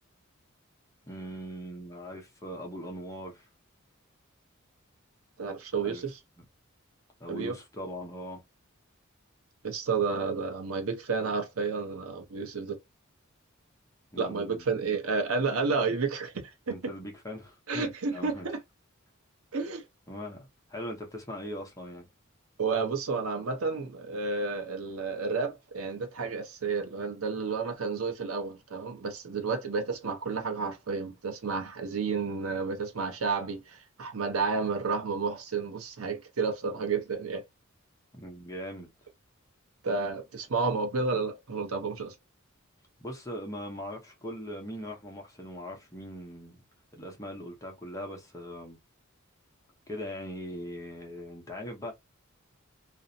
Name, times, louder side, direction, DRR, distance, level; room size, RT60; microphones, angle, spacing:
voice 1, 1.1-3.5 5.8-6.0 7.2-8.4 14.1-14.6 16.7-18.5 20.1-22.1 38.1-38.9 43.0-46.6 46.9-48.8 49.9-51.9, equal, 15° left, 0.7 m, -40 dB
voice 2, 5.4-6.2 7.3-7.5 9.6-12.8 14.2-16.8 17.7-18.6 19.5-19.8 22.6-37.4 39.8-42.1, right 4 dB, 90° right, 0.7 m, -31 dB
2.6 x 2.1 x 2.5 m
head